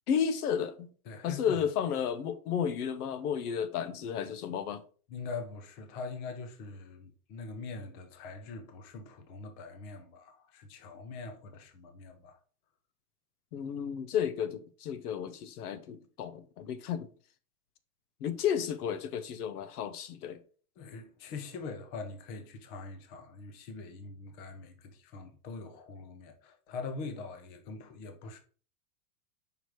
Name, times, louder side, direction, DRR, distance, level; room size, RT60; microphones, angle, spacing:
voice 1, 0.1-0.9 1.2-4.8 13.5-17.1 18.2-20.4, left 8 dB, 85° left, 1.0 m, -32 dB
voice 2, 1.1-1.6 5.1-12.4 20.8-28.4, left 4 dB, 20° left, 0.5 m, -43 dB
5.1 x 4.8 x 4.6 m
supercardioid pair, 170°, 44 cm